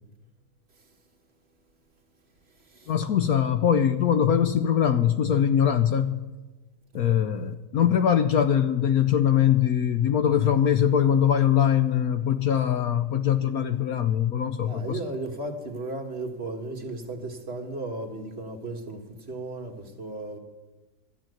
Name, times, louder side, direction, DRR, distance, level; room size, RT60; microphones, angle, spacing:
voice 1, 2.9-6.2 6.9-15.0, left 9 dB, 65° left, 1.0 m, -22 dB
voice 2, 14.6-19.0 19.3-20.4, right 2 dB, 40° right, 1.5 m, -35 dB
13.0 x 9.0 x 9.3 m
omnidirectional pair, 1.9 m